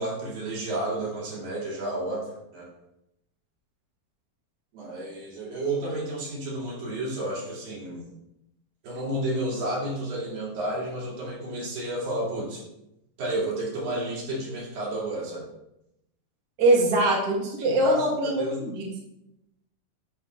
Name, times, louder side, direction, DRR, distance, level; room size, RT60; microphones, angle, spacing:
voice 1, 0.0-2.2 2.5-2.7 4.7-8.0 8.8-12.6 13.2-15.5 17.6-18.6, right 1 dB, 75° right, -5 dB, 4.2 m, -31 dB
voice 2, 16.6-18.8, right 1 dB, 35° right, -3 dB, 1.6 m, -22 dB
9.2 x 3.4 x 5.9 m, 0.86 s
omnidirectional pair, 4.1 m